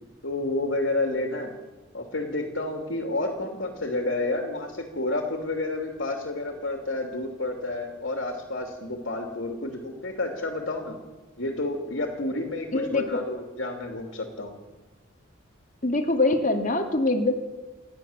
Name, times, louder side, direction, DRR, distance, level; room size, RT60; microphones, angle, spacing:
voice 1, 0.2-1.5 1.9-11.0 11.4-14.6, left 2 dB, 65° left, 3 dB, 3.0 m, -30 dB
voice 2, 12.7-13.2 15.8-17.3, left 2 dB, 40° left, 5 dB, 2.3 m, -24 dB
28.5 x 12.5 x 7.4 m, 1.2 s
head